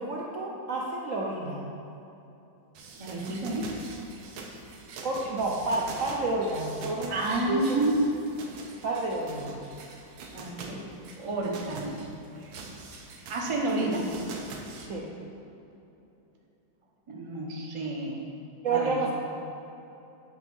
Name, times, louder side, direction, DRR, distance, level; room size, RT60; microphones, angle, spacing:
voice 1, 0.0-1.6 5.0-7.8 8.8-9.6 14.9-15.1 18.6-19.1, right 2 dB, 70° right, -3 dB, 0.7 m, -30 dB
sound 1, 2.7-14.9, right 4 dB, 85° right, 1.5 m, -44 dB
voice 2, 3.0-3.7 7.1-7.9 10.3-10.8 11.2-11.9 13.3-14.0 17.1-18.2 18.7-19.0, right 2 dB, 45° right, -2 dB, 0.4 m, -30 dB
8.1 x 3.5 x 6.1 m, 2.9 s
omnidirectional pair, 2.1 m